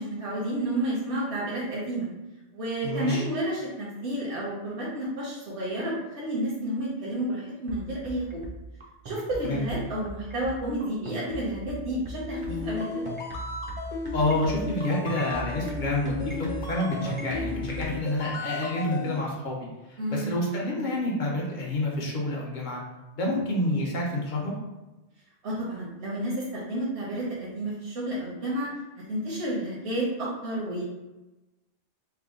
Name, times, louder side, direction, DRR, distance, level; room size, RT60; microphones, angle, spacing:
voice 1, 0.0-2.1 2.5-8.4 9.0-12.8 20.0-20.3 25.4-28.7 29.1-30.8, right 1 dB, 75° right, -6 dB, 1.2 m, -31 dB
voice 2, 2.8-3.2 9.4-9.6 14.1-22.8 23.1-24.5, left 1 dB, 45° left, -2 dB, 0.9 m, -28 dB
sound 1, 7.7-17.8, right 2 dB, 40° right, 0.5 m, -38 dB
sound 2, 12.3-19.2, left 4 dB, 75° left, 0.9 m, -35 dB
3.4 x 2.2 x 3.7 m, 1.0 s
omnidirectional pair, 1.2 m